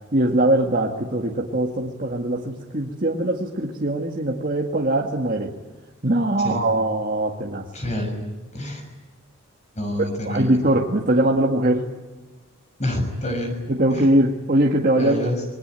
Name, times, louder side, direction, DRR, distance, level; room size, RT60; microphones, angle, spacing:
voice 1, 0.1-5.5 6.0-7.6 10.3-11.8 13.7-15.2, right 1 dB, 40° right, -1 dB, 2.0 m, -21 dB
voice 2, 7.7-8.2 8.5-8.8 9.7-10.6 12.8-13.5 13.9-14.1 15.0-15.5, left 1 dB, 35° left, 4 dB, 6.2 m, -27 dB
27.0 x 22.0 x 9.2 m, 1.2 s
head